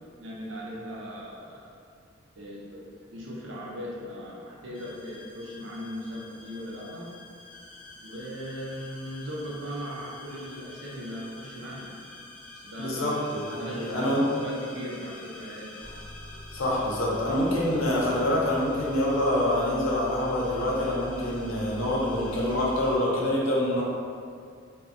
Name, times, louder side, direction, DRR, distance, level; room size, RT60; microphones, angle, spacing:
voice 1, 0.2-1.8 2.4-7.1 8.0-12.1 12.5-14.1 14.4-15.8, equal, 65° right, -4 dB, 0.5 m, -38 dB
sound 1, 4.7-23.0, left 1 dB, 5° left, 0.6 m, -45 dB
voice 2, 12.8-14.3 16.5-23.8, left 1 dB, 75° left, -5 dB, 0.6 m, -26 dB
2.6 x 2.1 x 2.5 m, 2.2 s
head